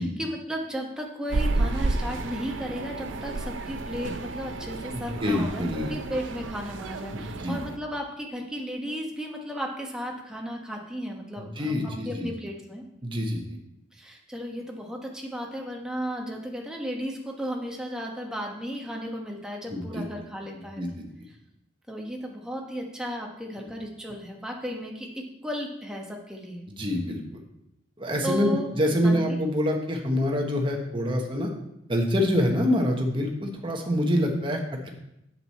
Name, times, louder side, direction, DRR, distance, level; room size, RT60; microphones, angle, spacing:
voice 1, 0.0-5.6 5.9-12.8 13.9-20.8 21.9-26.6 28.2-28.7 29.0-29.4, equal, 5° right, 0 dB, 1.2 m, -34 dB
sound 1, 1.3-7.8, right 2 dB, 85° right, 0.6 m, -31 dB
voice 2, 4.9-5.9 7.1-7.6 11.4-12.3 13.0-13.6 19.7-20.0 20.5-21.0 26.7-27.4 28.0-31.5 31.9-34.9, left 1 dB, 25° right, 2 dB, 1.2 m, -26 dB
7.9 x 7.6 x 4.2 m, 0.83 s
head